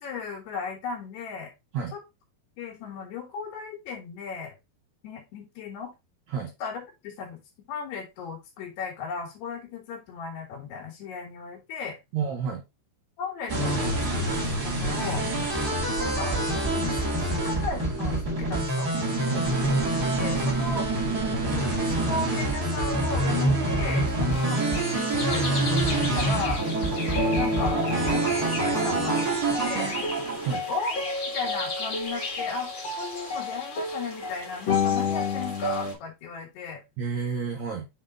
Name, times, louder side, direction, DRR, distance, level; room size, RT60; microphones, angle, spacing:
voice 1, 0.0-1.5 1.9-2.0 2.6-4.5 5.0-5.9 6.6-7.4 7.7-12.0 13.2-15.3 15.9-16.4 16.7-18.9 20.2-20.9 21.7-24.6 24.9-26.6 27.3-27.8 28.1-29.9 30.7-36.8, left 5 dB, 75° left, 0 dB, 3.8 m, -35 dB
voice 2, 12.1-12.6 19.2-19.5 30.4-30.7 37.0-37.9, right 6 dB, 75° right, 2 dB, 1.6 m, -30 dB
sound 1, 13.5-30.6, right 2 dB, 30° right, 2.0 m, -26 dB
sound 2, 24.3-35.9, left 3 dB, 40° left, 2.0 m, -31 dB
7.5 x 3.7 x 3.9 m, 0.23 s
omnidirectional pair, 5.0 m